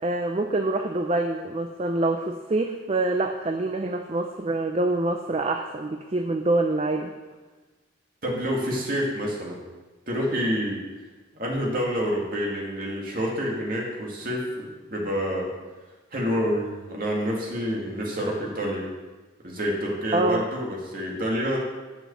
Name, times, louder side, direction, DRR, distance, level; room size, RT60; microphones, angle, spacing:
voice 1, 0.0-7.1 20.1-20.4, right 2 dB, 30° right, 4 dB, 0.4 m, -25 dB
voice 2, 8.2-9.6 10.1-10.8 11.3-15.5 16.1-18.8 19.4-21.6, equal, 45° right, -2 dB, 2.1 m, -28 dB
7.2 x 6.3 x 6.7 m, 1.2 s
head